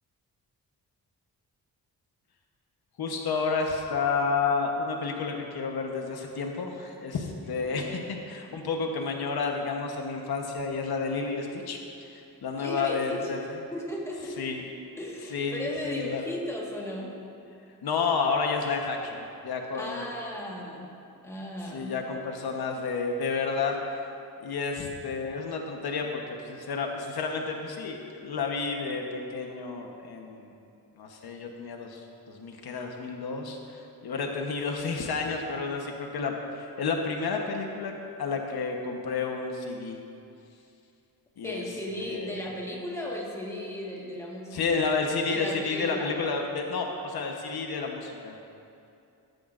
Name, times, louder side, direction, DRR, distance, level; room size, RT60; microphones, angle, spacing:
voice 1, 3.0-13.4 14.4-14.6 15.3-16.2 17.8-20.1 21.6-24.0 24.4-30.5 31.0-37.9 38.2-40.0 41.4-41.6 42.0-42.3 44.5-48.4, left 4 dB, 80° left, 2 dB, 1.2 m, -31 dB
voice 2, 7.6-7.9 12.6-13.2 13.7-14.4 15.0-17.1 19.7-20.9 21.2-21.9 41.4-44.8 45.3-46.2, left 1 dB, 5° left, -4 dB, 1.6 m, -36 dB
14.5 x 13.0 x 2.6 m, 2.6 s
wide cardioid pair, 155°, 37 cm